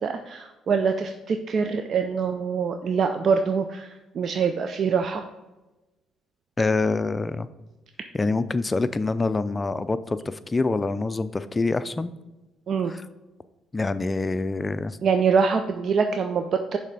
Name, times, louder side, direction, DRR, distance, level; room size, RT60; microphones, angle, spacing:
voice 1, 0.0-5.3 12.7-12.9 15.0-16.8, right 5 dB, 55° right, 7 dB, 0.4 m, -24 dB
voice 2, 6.6-7.5 8.1-12.1 12.9-13.0 13.7-15.0, left 3 dB, 25° left, 13 dB, 0.4 m, -25 dB
6.5 x 3.4 x 4.8 m, 1.1 s
hypercardioid pair, 60°, 0 cm